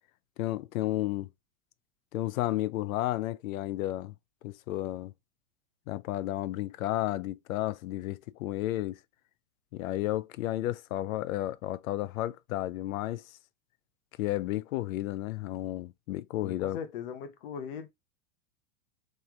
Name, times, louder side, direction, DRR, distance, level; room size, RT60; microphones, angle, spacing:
voice 1, 0.4-1.3 2.1-4.1 4.4-5.1 5.9-9.0 9.7-13.2 14.2-16.8, left 15 dB, 80° left, 0.5 m, -32 dB
voice 2, 16.4-17.9, left 7 dB, 45° left, 0.7 m, -39 dB
3.2 x 3.2 x 3.5 m
supercardioid pair, 175°, 41 cm